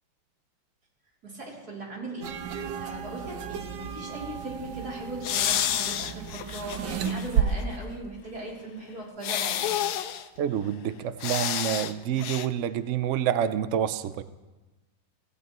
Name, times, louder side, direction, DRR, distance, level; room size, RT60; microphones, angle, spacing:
voice 1, 1.2-9.7, right 2 dB, 50° right, -4 dB, 4.0 m, -39 dB
sound 1, 2.2-7.4, right 9 dB, 65° right, 1.4 m, -33 dB
sound 2, 5.2-7.3 7.6-7.7 9.2-10.3 11.2-11.9 12.2-12.5, left 10 dB, 65° left, 1.1 m, -29 dB
voice 2, 10.4-14.2, right 10 dB, 90° right, 12 dB, 0.6 m, -28 dB
25.0 x 15.5 x 3.1 m, 1.1 s
omnidirectional pair, 2.1 m